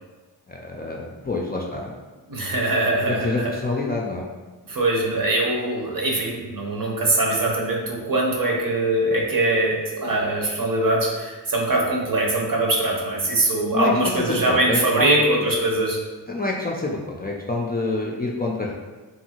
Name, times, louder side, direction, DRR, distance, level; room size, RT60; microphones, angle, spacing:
voice 1, 0.5-1.9 3.0-4.3 13.7-15.2 16.3-18.7, left 2 dB, 25° left, -2 dB, 0.3 m, -27 dB
voice 2, 2.3-3.5 4.7-16.0, right 2 dB, 50° right, -2 dB, 0.8 m, -22 dB
2.7 x 2.6 x 2.8 m, 1.3 s
cardioid pair, 45°, 43 cm